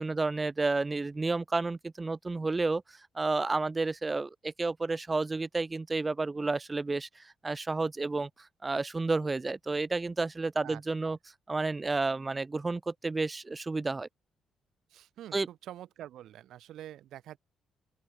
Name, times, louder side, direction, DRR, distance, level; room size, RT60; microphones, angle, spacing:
voice 1, 0.0-2.8 3.1-8.3 8.6-11.2 11.5-14.1 15.3-15.5, right 3 dB, 25° right, 0.9 m, -31 dB
voice 2, 10.6-11.2 14.9-17.4, right 12 dB, 75° right, 1.7 m, -46 dB
open air
cardioid pair, 90°, 0 cm